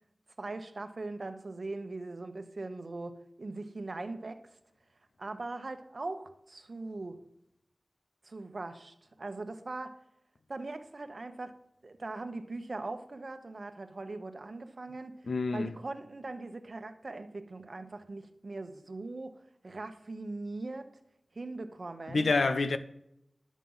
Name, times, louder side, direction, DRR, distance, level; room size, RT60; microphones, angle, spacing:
voice 1, 0.4-4.4 5.2-7.2 8.2-10.0 10.5-11.5 11.8-15.3 15.5-21.0 21.3-22.3, right 2 dB, 55° right, 1.1 m, -40 dB
voice 2, 15.3-15.7 22.1-22.8, left 3 dB, 90° left, 0.7 m, -27 dB
11.0 x 7.4 x 5.6 m
wide cardioid pair, 75°, 0 cm